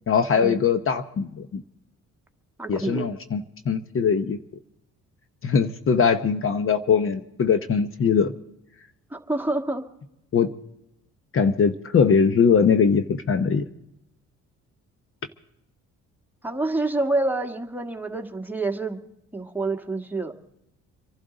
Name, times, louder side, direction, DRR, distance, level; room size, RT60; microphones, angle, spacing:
voice 1, 0.1-1.6 2.7-4.4 5.4-8.3 10.3-10.5 11.3-13.6, left 6 dB, 45° left, 9 dB, 0.9 m, -21 dB
voice 2, 2.6-3.2 9.1-9.8 16.4-19.0 19.3-20.6, right 2 dB, 5° right, 3 dB, 1.6 m, -27 dB
25.5 x 11.5 x 3.9 m, 0.81 s
cardioid pair, 90°, 30 cm